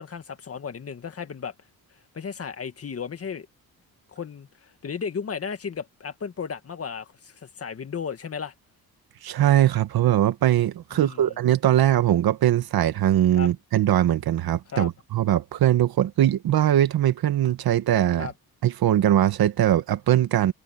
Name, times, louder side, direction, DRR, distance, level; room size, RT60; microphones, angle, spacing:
voice 1, 0.0-1.5 2.1-3.5 4.1-8.5 10.9-11.3 13.4-13.5 14.7-14.9 18.2-18.3, left 6 dB, 40° left, 2.0 m, -34 dB
voice 2, 9.2-18.3 18.6-20.5, right 12 dB, 70° right, 1.6 m, -21 dB
cardioid pair, 125°, 38 cm